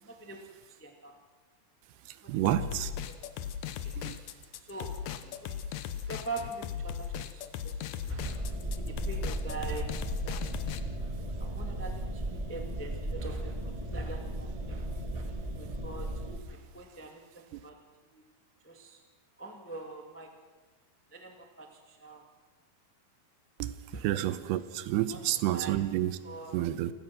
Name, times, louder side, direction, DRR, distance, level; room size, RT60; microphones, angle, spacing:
voice 1, 0.0-1.1 2.2-2.4 3.1-3.3 3.8-4.2 4.6-5.6 6.0-8.4 8.8-11.1 11.4-14.9 15.1-16.1 16.5-17.8 18.1-18.3 18.6-19.0 19.4-20.3 21.1-22.2 23.9-24.0 25.1-25.8 26.2-26.6, right 2 dB, 10° left, 3 dB, 0.5 m, -43 dB
voice 2, 2.3-2.9 4.0-4.2 23.6-26.2 26.5-26.9, right 13 dB, 85° right, 14 dB, 2.9 m, -30 dB
sound 1, 2.5-10.8, left 9 dB, 90° left, 1.6 m, -38 dB
sound 2, 8.2-16.4, right 1 dB, 35° right, 0.5 m, -36 dB
29.0 x 17.0 x 6.1 m, 1.4 s
omnidirectional pair, 4.7 m